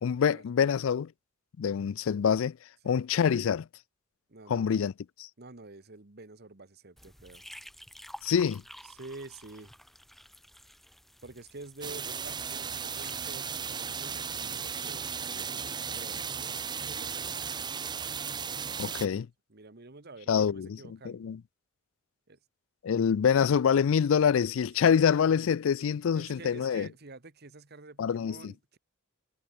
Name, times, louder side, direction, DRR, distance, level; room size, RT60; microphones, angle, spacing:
voice 1, 0.0-1.1 1.6-2.6 2.8-3.7 4.5-4.9 8.2-8.6 18.8-19.3 20.3-20.8 21.0-21.4 22.8-26.9 28.0-28.5, left 7 dB, 65° left, 0.4 m, -25 dB
voice 2, 4.3-4.8 5.4-7.4 8.8-9.7 11.2-17.4 19.5-21.3 22.3-22.4 25.4-25.5 26.1-28.8, right 3 dB, 50° right, 1.5 m, -48 dB
sound 1, 7.0-13.3, equal, ahead, 4.3 m, -51 dB
sound 2, 11.8-19.1, right 7 dB, 20° right, 0.6 m, -36 dB
head